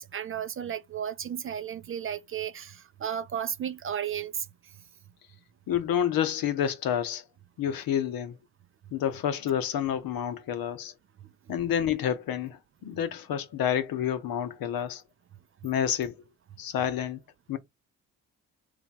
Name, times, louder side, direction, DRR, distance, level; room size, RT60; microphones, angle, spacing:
voice 1, 0.0-4.5, right 9 dB, 35° right, 0.5 m, -34 dB
voice 2, 5.7-7.2 7.6-8.4 8.9-10.9 11.5-15.0 15.6-16.1 16.6-17.2 17.5-17.6, left 9 dB, 60° left, 0.8 m, -29 dB
3.1 x 2.4 x 4.0 m
hypercardioid pair, 60°, 39 cm